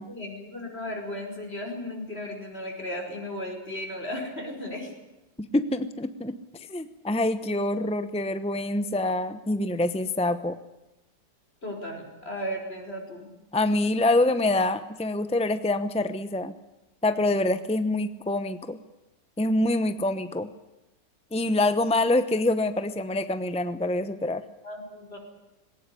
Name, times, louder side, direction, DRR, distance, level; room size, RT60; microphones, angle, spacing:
voice 1, 0.1-4.9 11.6-13.3 24.6-25.2, left 1 dB, 30° left, 2 dB, 5.6 m, -35 dB
voice 2, 5.4-6.4 6.7-10.6 13.5-16.5 17.0-18.8 19.4-20.5 21.3-24.4, left 2 dB, 10° left, 11 dB, 0.3 m, -25 dB
20.5 x 18.0 x 9.9 m, 0.98 s
omnidirectional pair, 2.0 m